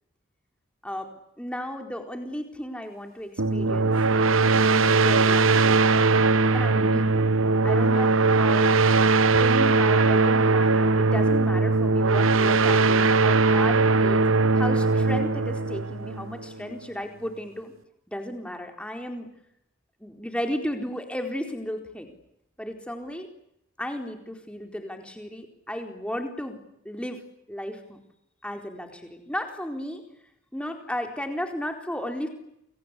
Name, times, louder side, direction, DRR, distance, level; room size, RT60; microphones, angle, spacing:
voice 1, 1.4-3.9 4.7-5.8 6.5-8.7 9.4-14.2 14.6-17.7 18.1-19.3 20.0-22.1 22.6-23.3 23.8-26.6 26.8-27.2 27.5-28.0 28.4-30.0 30.5-32.3, equal, 5° left, 4 dB, 4.2 m, -34 dB
sound 1, 3.4-16.7, right 3 dB, 85° right, 1.1 m, -20 dB
29.5 x 24.0 x 8.5 m, 0.80 s
head